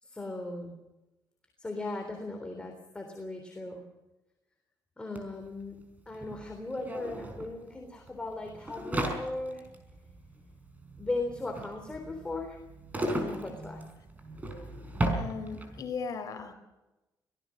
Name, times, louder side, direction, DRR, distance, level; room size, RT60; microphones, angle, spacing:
voice 1, 0.0-0.7 1.6-3.8 5.0-9.6 11.0-12.6 13.1-13.8, left 2 dB, 15° left, 3 dB, 3.6 m, -37 dB
sound 1, 5.2-5.3 5.4-15.9, right 1 dB, 20° right, 5.2 m, -36 dB
voice 2, 15.2-16.5, left 5 dB, 55° left, 7 dB, 3.9 m, -37 dB
24.5 x 18.5 x 6.4 m, 1.0 s
cardioid pair, 130°, 7 cm